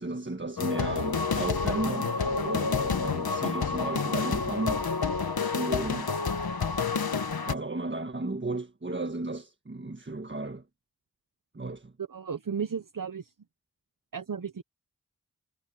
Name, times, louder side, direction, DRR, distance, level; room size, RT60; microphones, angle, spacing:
voice 1, 0.0-4.9 5.4-6.1 7.5-10.7 11.5-11.9, right 2 dB, 30° right, 1.6 m, -34 dB
sound 1, 0.6-7.5, left 5 dB, 85° left, 1.4 m, -29 dB
voice 2, 12.0-13.3 14.1-14.6, right 6 dB, 60° right, 1.1 m, -34 dB
wide cardioid pair, 50°, 36 cm